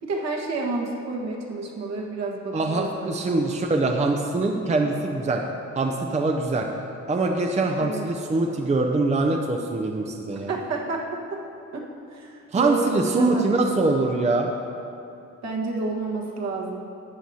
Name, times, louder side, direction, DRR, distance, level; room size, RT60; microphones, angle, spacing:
voice 1, 0.0-3.4 7.8-8.1 10.3-11.4 11.7-11.8 12.1-13.6 15.4-16.8, right 3 dB, 60° right, -2 dB, 1.5 m, -30 dB
voice 2, 2.5-5.4 5.7-6.7 7.1-10.5 12.5-14.5, right 3 dB, 25° right, 2 dB, 0.6 m, -23 dB
12.0 x 8.1 x 2.8 m, 2.7 s
cardioid pair, 90°, 30 cm